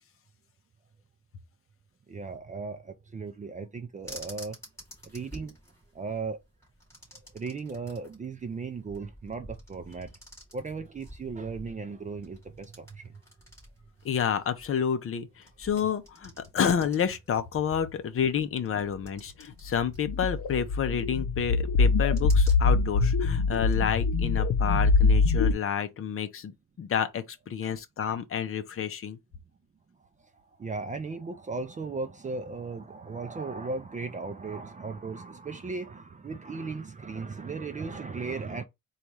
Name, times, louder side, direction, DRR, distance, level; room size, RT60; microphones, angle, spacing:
voice 1, 2.1-4.6 5.0-5.6 5.9-6.4 7.3-10.1 10.5-13.2 15.8-15.9 27.6-27.8 30.2-38.6, right 4 dB, 25° right, 0.4 m, -37 dB
sound 1, 4.0-23.8, equal, 10° left, 2.4 m, -49 dB
voice 2, 14.0-29.2, left 8 dB, 45° left, 0.6 m, -29 dB
sound 2, 20.0-25.5, left 4 dB, 85° left, 0.7 m, -24 dB
4.1 x 2.4 x 4.7 m
wide cardioid pair, 175°, 32 cm